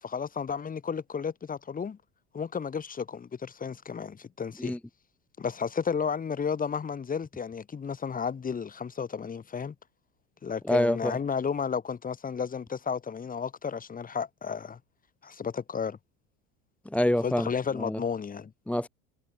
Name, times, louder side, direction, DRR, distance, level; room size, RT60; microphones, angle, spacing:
voice 1, 0.0-2.0 2.3-4.8 5.4-9.7 10.4-14.8 15.2-16.0 17.2-18.5, left 6 dB, 20° left, 1.4 m, -32 dB
voice 2, 10.7-11.2 16.9-17.5 17.8-18.0 18.7-18.9, left 1 dB, 5° left, 0.6 m, -26 dB
hypercardioid pair, 90°, 38 cm